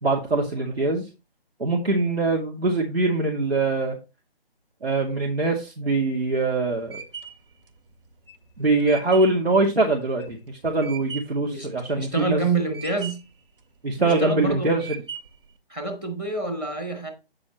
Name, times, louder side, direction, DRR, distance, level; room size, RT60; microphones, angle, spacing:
voice 1, 0.0-1.1 1.6-4.0 4.8-7.0 8.6-12.4 13.8-15.0, right 2 dB, 85° right, 2.4 m, -23 dB
sound 1, 6.0-11.5 11.9-12.5 12.7-13.4 13.9-14.4 14.8-15.5, right 7 dB, 65° right, 2.1 m, -39 dB
voice 2, 12.0-13.2 14.0-14.7 15.7-17.1, right 3 dB, 10° right, 0.8 m, -27 dB
8.9 x 7.1 x 3.1 m
figure-of-eight pair, 155°, 30 cm